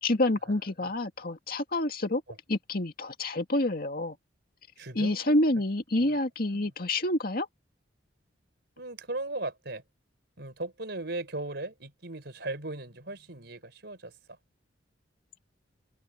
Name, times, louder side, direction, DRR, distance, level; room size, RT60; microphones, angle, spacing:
voice 1, 0.0-2.2 2.5-4.2 4.9-7.5, left 1 dB, 50° left, 2.1 m, -28 dB
voice 2, 4.8-5.4 5.9-6.2 6.5-6.7 8.8-9.8 10.4-14.4, right 2 dB, 60° right, 4.8 m, -38 dB
head